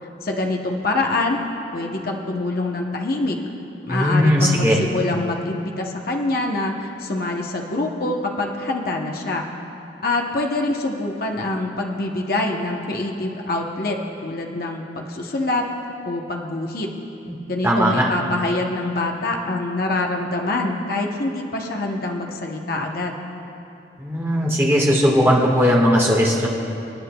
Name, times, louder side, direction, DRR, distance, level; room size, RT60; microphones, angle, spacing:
voice 1, 0.0-1.4 1.7-3.4 3.9-9.4 10.0-15.7 16.1-16.9 17.5-23.1, left 2 dB, 50° left, 1 dB, 0.8 m, -25 dB
voice 2, 3.9-4.8 17.3-17.4 17.6-18.1 24.0-26.5, equal, 15° right, -3 dB, 1.5 m, -18 dB
25.5 x 9.5 x 2.2 m, 2.8 s
head